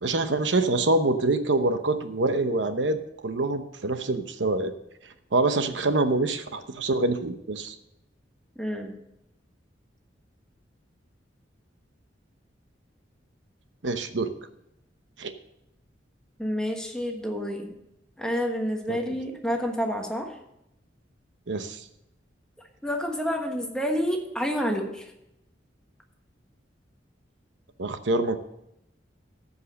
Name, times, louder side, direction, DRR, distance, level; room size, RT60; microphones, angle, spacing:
voice 1, 0.0-3.0 3.2-4.7 5.3-7.7 13.8-14.3 15.2-15.3 18.9-19.0 21.5-21.8 27.8-28.4, right 2 dB, 75° right, 9 dB, 0.9 m, -25 dB
voice 2, 8.6-9.0 16.4-17.7 18.2-20.4 22.8-25.1, equal, 5° left, 2 dB, 1.3 m, -29 dB
13.5 x 5.4 x 6.4 m, 0.83 s
head